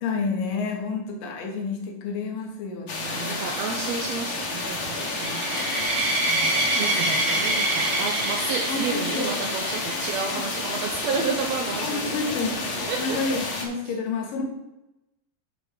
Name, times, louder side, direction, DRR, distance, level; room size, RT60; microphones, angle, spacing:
voice 1, 0.0-3.5 8.7-9.5 10.3-10.5 11.8-12.6 13.0-14.4, left 4 dB, 75° left, 1 dB, 3.0 m, -30 dB
sound 1, 2.9-13.7, left 3 dB, 55° left, 1.6 m, -30 dB
sound 2, 3.0-13.4, right 3 dB, 65° right, 2.5 m, -41 dB
voice 2, 3.1-5.5 6.3-12.5 12.9-13.2, right 5 dB, 85° right, 2 dB, 1.5 m, -31 dB
sound 3, 5.0-10.3, right 2 dB, 25° right, 1.5 m, -27 dB
10.0 x 4.3 x 5.0 m, 0.94 s
omnidirectional pair, 4.0 m